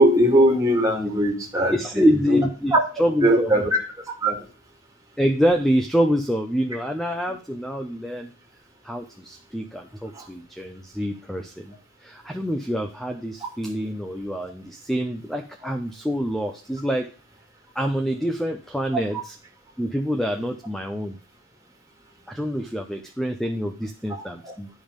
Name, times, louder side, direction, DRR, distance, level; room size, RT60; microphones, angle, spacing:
voice 1, 0.0-2.4 2.7-2.8 3.2-3.8 4.2-4.4 10.2-10.3 24.4-24.5, right 1 dB, 15° right, 0 dB, 2.3 m, -20 dB
voice 2, 1.7-2.7 3.0-3.6 5.2-8.3 8.8-11.7 12.0-17.1 17.7-19.4 19.8-21.2 22.3-24.7, equal, ahead, 5 dB, 0.7 m, -26 dB
11.0 x 5.3 x 5.2 m, 0.37 s
head